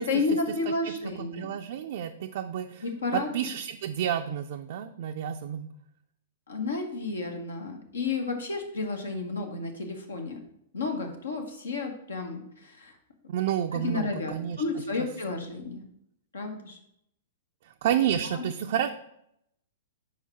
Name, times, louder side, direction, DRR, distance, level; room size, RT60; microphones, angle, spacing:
voice 1, 0.0-1.5 2.8-3.3 6.5-10.4 10.7-12.9 13.7-15.8 16.3-16.8 18.3-18.4, left 3 dB, 75° left, 3 dB, 1.3 m, -31 dB
voice 2, 1.3-2.8 3.1-5.7 13.3-14.6 15.0-15.1 17.6-18.9, right 10 dB, 55° right, 4 dB, 0.4 m, -30 dB
4.8 x 4.8 x 5.8 m, 0.75 s
figure-of-eight pair, 105°, 0 cm